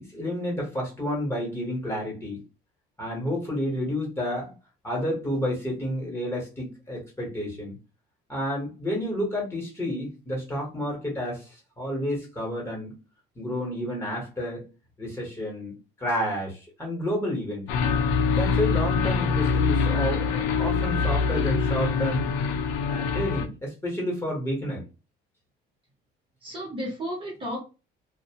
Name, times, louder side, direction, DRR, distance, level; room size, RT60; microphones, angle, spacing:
voice 1, 0.0-2.4 3.0-4.5 4.8-7.8 8.3-12.9 13.3-14.6 15.0-17.6 18.3-22.3 22.9-24.8, equal, 10° left, -3 dB, 1.1 m, -30 dB
sound 1, 17.7-23.4, left 5 dB, 85° left, 0.6 m, -24 dB
voice 2, 26.4-27.6, equal, 25° right, -1 dB, 0.9 m, -33 dB
2.6 x 2.1 x 2.8 m, 0.30 s
cardioid pair, 155°, 20 cm